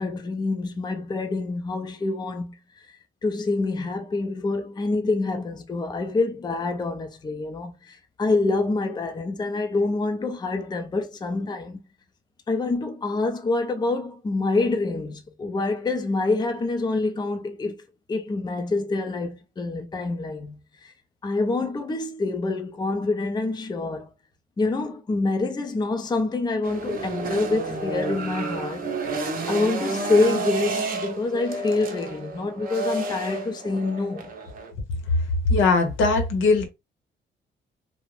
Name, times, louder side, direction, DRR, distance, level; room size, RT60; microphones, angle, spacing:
voice 1, 0.0-2.9 3.2-11.8 12.5-20.9 21.2-24.1 24.6-28.9 29.5-34.3, left 3 dB, 20° left, 0.5 m, -26 dB
sound 1, 26.6-34.7, right 3 dB, 45° right, 0.7 m, -30 dB
voice 2, 35.5-36.7, left 3 dB, 75° left, 0.8 m, -20 dB
2.4 x 2.1 x 3.1 m
cardioid pair, 90°, 20 cm